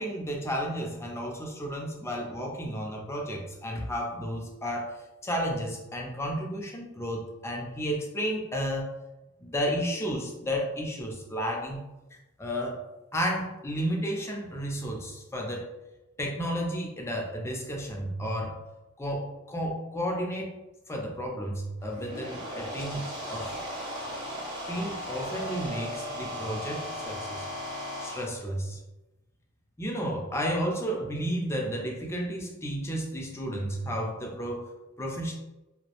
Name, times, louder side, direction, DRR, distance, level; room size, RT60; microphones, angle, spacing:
voice 1, 0.0-4.9 5.2-8.9 9.4-11.8 12.4-12.8 13.1-15.7 16.2-18.6 19.0-20.5 20.9-23.6 24.7-27.5 28.0-28.8 29.8-34.7 35.0-35.3, equal, 10° left, -1 dB, 0.4 m, -32 dB
sound 1, 21.8-28.2, equal, 20° right, 0.7 m, -36 dB
2.2 x 2.0 x 2.8 m, 1.0 s
head